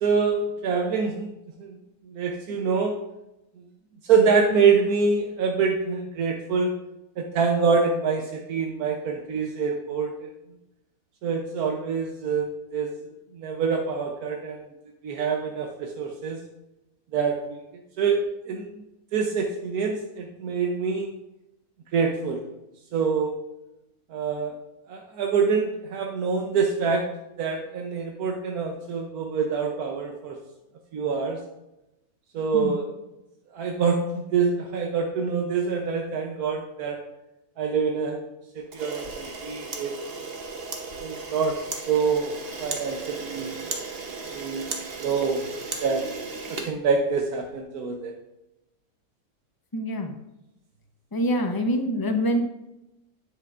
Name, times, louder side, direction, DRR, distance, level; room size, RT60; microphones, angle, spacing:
voice 1, 0.0-1.3 1.6-1.7 2.1-2.9 4.1-6.7 7.2-10.3 11.2-12.9 13.3-14.6 15.0-16.4 17.1-17.6 18.0-18.2 18.5-18.7 19.1-21.1 21.9-22.4 22.9-23.3 24.1-24.5 24.9-27.0 27.4-30.4 30.9-31.4 32.3-32.9 33.5-37.0 37.6-38.2 38.5-39.9 41.0-41.6 41.9-42.3 42.6-43.5 44.3-44.7 45.0-45.5 45.8-46.0 46.5-48.1, right 5 dB, 85° right, 2 dB, 1.3 m, -25 dB
Camera, 38.7-47.4, right 4 dB, 45° right, 1.1 m, -36 dB
voice 2, 49.7-50.2 51.1-52.4, equal, 20° left, 4 dB, 0.6 m, -25 dB
10.0 x 7.7 x 2.5 m, 0.92 s
omnidirectional pair, 1.5 m